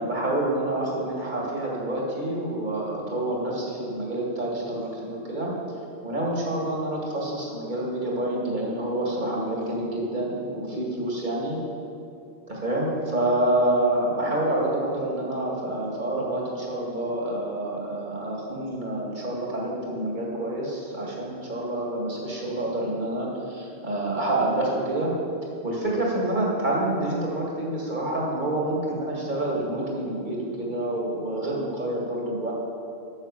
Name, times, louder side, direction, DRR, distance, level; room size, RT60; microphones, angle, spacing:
voice 1, 0.0-5.5 6.0-11.6 12.5-25.1 25.6-32.5, right 1 dB, 45° right, -3 dB, 2.2 m, -27 dB
9.6 x 6.4 x 6.8 m, 2.5 s
omnidirectional pair, 1.1 m